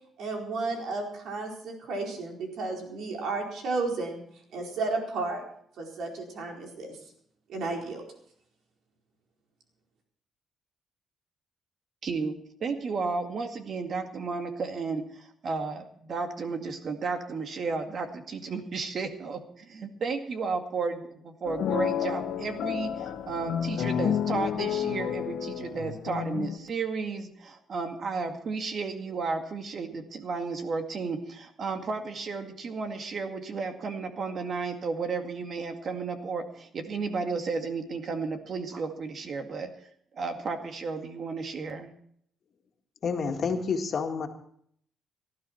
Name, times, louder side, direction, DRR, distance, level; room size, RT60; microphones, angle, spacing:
voice 1, 0.2-4.2 4.5-5.4 5.8-7.0 7.5-8.0, right 3 dB, 75° right, 1 dB, 4.4 m, -33 dB
voice 2, 12.0-12.4 12.6-39.9 40.1-41.9, right 4 dB, 55° right, 6 dB, 2.1 m, -33 dB
sound 1, 21.4-26.6, left 9 dB, 75° left, 1.2 m, -30 dB
voice 3, 43.0-44.3, left 5 dB, 55° left, 4 dB, 2.1 m, -29 dB
18.5 x 12.5 x 4.5 m, 0.66 s
cardioid pair, 90°, 0 cm